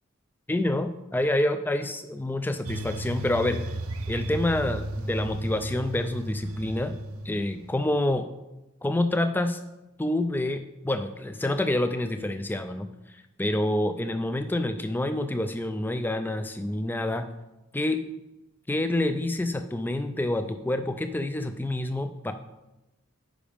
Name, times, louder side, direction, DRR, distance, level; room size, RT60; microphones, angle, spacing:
voice 1, 0.5-3.6 4.1-6.9 7.2-8.3 8.8-9.6 10.0-12.9 13.4-17.3 17.7-18.0 18.7-22.3, left 1 dB, 10° left, 9 dB, 0.3 m, -27 dB
sound 1, 2.6-8.0, right 1 dB, 80° right, 0.5 m, -34 dB
10.0 x 5.0 x 3.5 m, 0.99 s
head